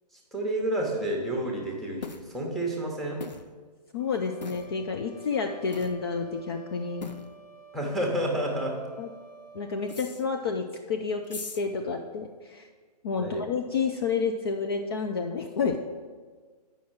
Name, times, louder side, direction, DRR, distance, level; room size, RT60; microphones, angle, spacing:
voice 1, 0.3-3.2 7.7-8.8 13.2-13.4, right 1 dB, ahead, -1 dB, 1.0 m, -30 dB
sound 1, 2.0-2.3 3.2-3.5 4.4-4.7 5.7-6.0 7.0-7.3 9.9-10.2 11.2-11.6, left 4 dB, 85° left, 0.6 m, -39 dB
voice 2, 3.9-7.1 9.0-9.1 9.5-12.7 13.0-15.8, left 5 dB, 35° left, 4 dB, 0.5 m, -30 dB
sound 2, 4.0-10.0, right 4 dB, 60° left, 1.6 m, -51 dB
8.2 x 5.6 x 6.1 m, 1.5 s
figure-of-eight pair, 130°, 21 cm